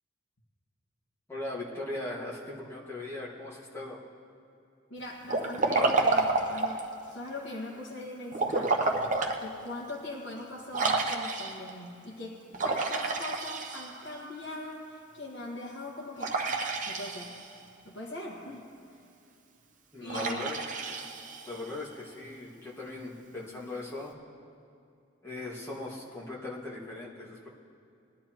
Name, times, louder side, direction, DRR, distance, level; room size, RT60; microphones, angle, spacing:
voice 1, 1.3-4.0 19.9-20.6 21.5-24.1 25.2-27.5, left 2 dB, 15° left, -5 dB, 1.9 m, -39 dB
voice 2, 4.9-8.8 9.4-16.4 16.9-17.4 17.8-18.7 20.0-20.5, left 1 dB, 70° left, -5 dB, 1.7 m, -41 dB
Liquid, 5.3-6.9 8.3-9.4 9.9-10.0 10.7-11.7 12.5-14.2 16.2-17.6 20.1-21.7, right 3 dB, 40° right, 0.9 m, -29 dB
21.0 x 11.0 x 3.1 m, 2.5 s
head